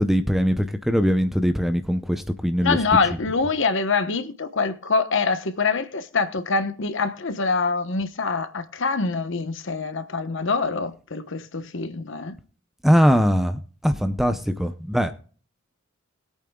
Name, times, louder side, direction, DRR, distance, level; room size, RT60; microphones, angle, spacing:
voice 1, 0.0-2.8 12.8-15.1, equal, ahead, 0.6 m, -21 dB
voice 2, 2.6-12.4, left 4 dB, 65° left, 1.1 m, -25 dB
21.0 x 8.6 x 2.3 m
head